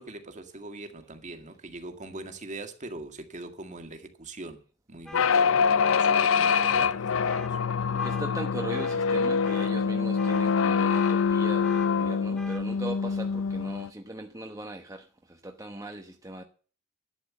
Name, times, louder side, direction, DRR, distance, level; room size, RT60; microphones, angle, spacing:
voice 1, 0.0-4.6 4.9-7.6, right 2 dB, 35° right, 1.9 m, -42 dB
sound 1, 5.1-13.9, left 6 dB, 70° left, 0.5 m, -25 dB
sound 2, 5.1-5.3 5.8-6.1 6.5-6.8 7.2-7.5 8.0-8.2 8.7-9.0 9.4-9.7 10.2-10.4 10.9-11.2 11.6-11.9 12.3-12.6, right 1 dB, 5° left, 2.0 m, -44 dB
voice 2, 7.9-16.4, right 1 dB, 15° right, 1.1 m, -39 dB
12.0 x 9.3 x 7.0 m
head